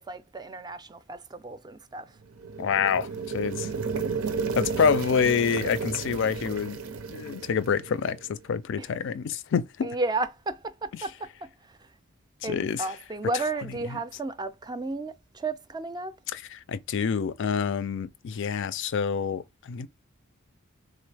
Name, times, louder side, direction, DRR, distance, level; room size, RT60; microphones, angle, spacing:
voice 1, 0.0-2.1 8.8-8.9 9.8-11.5 12.4-16.2, right 2 dB, 20° right, 0.4 m, -33 dB
sound 1, 2.3-8.3, right 5 dB, 90° right, 0.6 m, -33 dB
voice 2, 2.6-3.1 3.3-3.7 4.6-6.8 7.1-10.0 12.4-12.9 16.3-19.9, left 6 dB, 60° left, 0.4 m, -27 dB
3.9 x 3.0 x 3.3 m
head